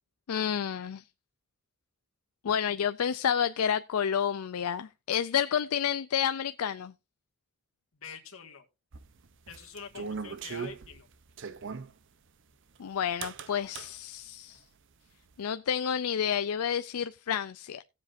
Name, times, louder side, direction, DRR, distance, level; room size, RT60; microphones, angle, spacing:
voice 1, 0.3-1.0 2.4-6.9 12.8-14.6 15.4-17.8, left 8 dB, 90° left, 0.4 m, -30 dB
voice 2, 7.9-8.7 9.5-11.1, left 6 dB, 70° left, 1.9 m, -46 dB
sound 1, 8.9-11.9 13.2-13.9, right 5 dB, 60° right, 0.7 m, -39 dB
17.0 x 7.4 x 2.6 m
head